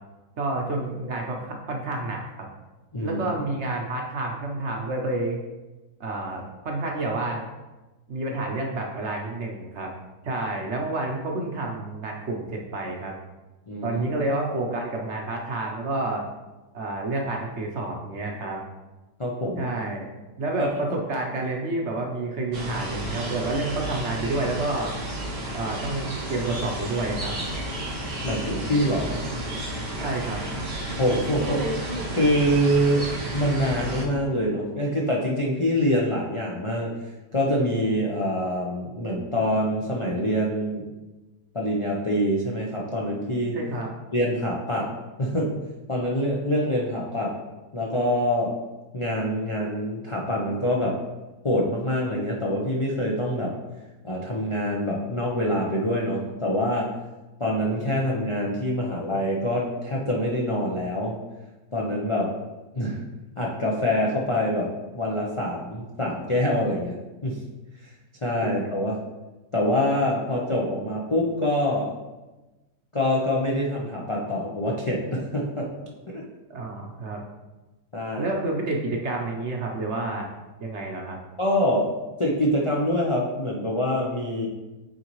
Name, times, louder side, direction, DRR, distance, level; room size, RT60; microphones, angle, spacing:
voice 1, 0.4-2.2 3.0-5.4 6.0-7.5 8.1-9.9 10.2-13.1 13.8-16.3 16.7-18.6 19.6-20.1 20.4-24.9 25.5-27.3 30.0-30.4 43.5-43.9 76.5-77.2 78.2-80.3 80.6-81.2, right 2 dB, 55° right, 1 dB, 0.9 m, -29 dB
voice 2, 2.9-3.3 13.7-14.1 19.2-19.7 20.6-20.7 28.2-29.2 31.0-31.7 32.1-37.0 37.3-40.9 41.5-43.6 44.1-44.9 45.2-45.6 45.9-47.4 47.7-48.6 48.9-51.0 51.4-53.5 54.0-56.9 57.4-61.2 61.7-62.3 62.7-63.0 63.4-67.4 67.8-67.9 68.2-69.0 69.5-71.9 72.9-75.7 76.1-76.2 77.9-78.3 81.4-84.5, equal, 55° left, -3 dB, 0.3 m, -25 dB
sound 1, 22.5-34.1, right 1 dB, 85° right, 2.0 m, -32 dB
9.0 x 4.0 x 3.1 m, 1.1 s
omnidirectional pair, 1.8 m